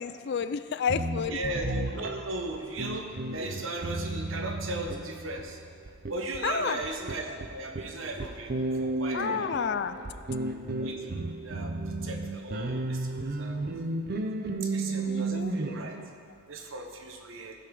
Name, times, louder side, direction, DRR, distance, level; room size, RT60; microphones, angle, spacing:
voice 1, 0.0-1.4 6.4-6.8 9.1-10.0 15.1-15.5, left 6 dB, 50° left, 12 dB, 0.3 m, -30 dB
sound 1, 0.9-16.0, right 2 dB, 45° right, 0.6 m, -33 dB
voice 2, 1.3-5.6 6.1-8.5 8.8-9.5 10.0-10.1 10.8-11.7 12.0-13.1 13.4-13.6 14.6-15.9 16.5-17.5, right 2 dB, 60° right, 3 dB, 1.1 m, -37 dB
15.5 x 5.9 x 5.4 m, 2.2 s
head